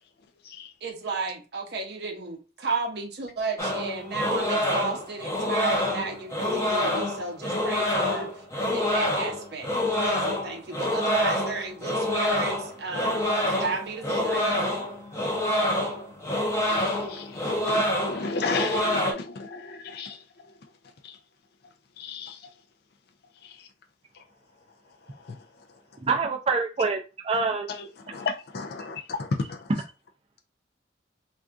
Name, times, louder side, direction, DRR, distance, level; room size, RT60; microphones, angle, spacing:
voice 1, 0.8-8.3 8.7-14.4, right 3 dB, 60° right, 0.8 m, -33 dB
sound 1, 3.6-19.1, left 1 dB, 15° left, 0.6 m, -27 dB
voice 2, 16.7-20.1 22.0-22.3 28.1-29.6, left 4 dB, 55° left, 0.4 m, -32 dB
voice 3, 26.1-27.7, right 4 dB, 30° right, 0.5 m, -26 dB
2.6 x 2.4 x 3.5 m
head